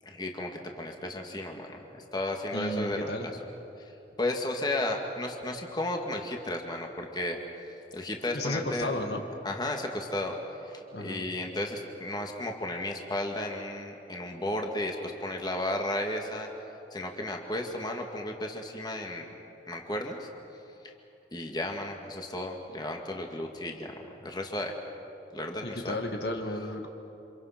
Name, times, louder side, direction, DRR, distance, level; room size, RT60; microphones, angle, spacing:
voice 1, 0.0-0.5 0.8-1.8 2.1-3.3 4.2-7.4 7.9-8.9 9.4-10.4 10.7-16.5 16.9-19.3 19.7-20.3 21.3-23.9 24.2-24.7 25.3-25.9, left 1 dB, 25° left, 2 dB, 2.0 m, -33 dB
voice 2, 2.5-3.3 8.3-9.2 10.9-11.2 25.6-26.9, left 1 dB, 65° left, 4 dB, 2.0 m, -33 dB
28.5 x 26.5 x 6.0 m, 3.0 s
head